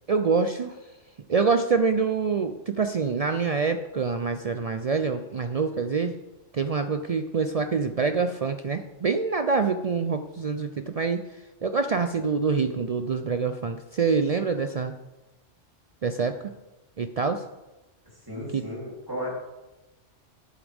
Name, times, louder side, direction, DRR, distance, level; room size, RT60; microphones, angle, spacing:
voice 1, 0.1-0.7 1.3-6.2 6.5-11.2 11.6-14.9 16.0-16.4 17.0-17.4 18.5-18.6, right 5 dB, 70° right, 8 dB, 0.3 m, -25 dB
voice 2, 18.1-19.3, equal, 15° right, -4 dB, 3.2 m, -34 dB
12.0 x 8.8 x 3.5 m, 1.1 s
omnidirectional pair, 1.3 m